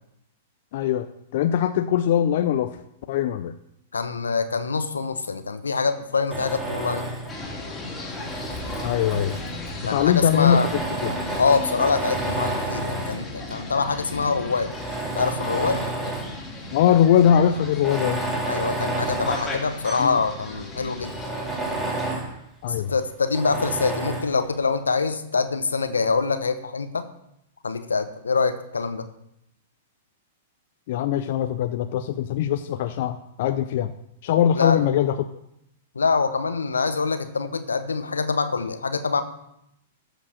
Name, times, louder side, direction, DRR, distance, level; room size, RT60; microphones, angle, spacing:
voice 1, 0.7-1.1 1.3-2.8 3.1-3.5 8.8-9.3 9.9-11.1 16.7-18.2 20.0-20.2 22.6-22.9 30.9-33.9 34.2-35.2, left 9 dB, 55° left, 9 dB, 0.5 m, -21 dB
voice 2, 3.9-7.0 9.9-10.7 11.4-14.7 15.1-15.8 18.5-21.1 22.8-27.1 27.6-29.0 34.5-34.9 35.9-39.2, left 4 dB, 80° left, 10 dB, 1.0 m, -25 dB
Tools, 6.3-7.4 8.1-9.7 10.4-13.3 14.0-14.1 14.6-16.4 16.8-16.9 17.7-20.2 20.6-20.7 21.0-22.4 23.3-24.4, right 2 dB, 10° right, 2.6 m, -30 dB
sound 1, 7.3-22.1, left 1 dB, 15° left, 2.9 m, -36 dB
14.0 x 5.1 x 6.4 m, 0.79 s
figure-of-eight pair, 105°, 0 cm